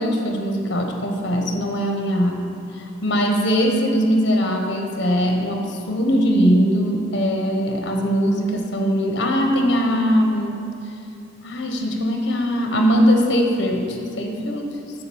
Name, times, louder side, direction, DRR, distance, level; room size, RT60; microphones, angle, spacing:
voice 1, 0.0-2.3 2.8-10.6 11.4-14.7, equal, 55° left, 2 dB, 1.1 m, -21 dB
7.7 x 6.0 x 7.0 m, 2.6 s
head